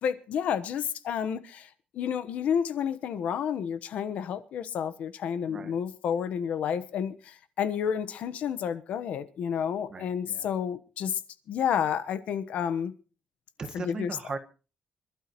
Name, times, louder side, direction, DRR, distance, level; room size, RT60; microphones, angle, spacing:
voice 1, 0.0-1.7 1.9-11.2 11.5-12.9 13.7-14.2, left 8 dB, 70° left, 1.1 m, -30 dB
voice 2, 5.5-5.8 9.9-10.5 13.6-14.4, right 4 dB, 30° right, 1.5 m, -38 dB
26.0 x 12.0 x 3.1 m
cardioid pair, 160°, 2 cm